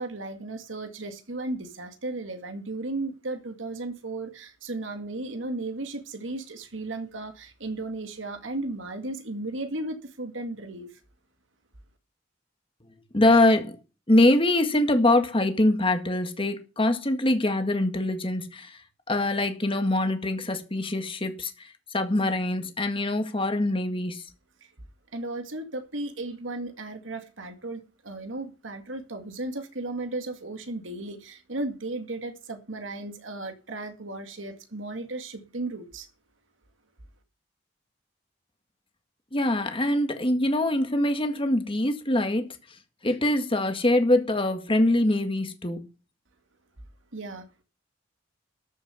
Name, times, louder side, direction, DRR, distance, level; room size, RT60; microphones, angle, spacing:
voice 1, 0.0-10.9 24.6-24.7 25.1-36.1 47.1-47.6, right 2 dB, 90° right, 2.1 m, -35 dB
voice 2, 13.1-13.8 14.1-18.8 19.1-24.2 39.3-42.5 43.0-45.8, left 1 dB, 30° left, 1.9 m, -24 dB
13.5 x 6.7 x 7.0 m
head